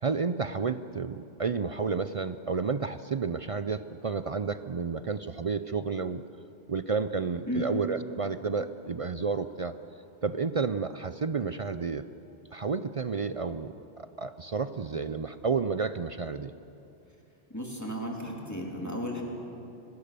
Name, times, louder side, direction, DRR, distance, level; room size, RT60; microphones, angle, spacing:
voice 1, 0.0-6.2 6.7-9.7 10.2-12.0 12.5-16.5, right 5 dB, 50° right, 12 dB, 0.4 m, -31 dB
voice 2, 17.5-19.2, equal, 15° left, -1 dB, 3.1 m, -34 dB
24.0 x 19.0 x 6.8 m, 2.8 s
omnidirectional pair, 1.2 m